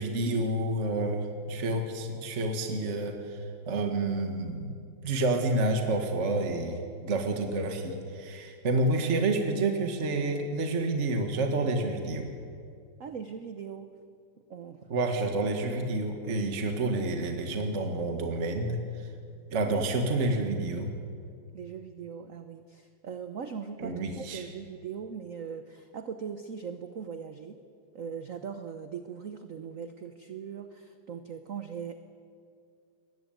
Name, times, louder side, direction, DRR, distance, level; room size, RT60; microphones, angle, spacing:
voice 1, 0.0-3.4 3.7-4.8 5.0-12.3 14.9-18.8 19.5-20.9 23.8-24.4, right 2 dB, 35° right, 4 dB, 1.8 m, -29 dB
voice 2, 13.0-13.9 14.5-14.8 21.5-27.6 27.9-32.0, right 7 dB, 60° right, 8 dB, 0.9 m, -40 dB
20.5 x 15.0 x 9.2 m, 2.3 s
omnidirectional pair, 2.4 m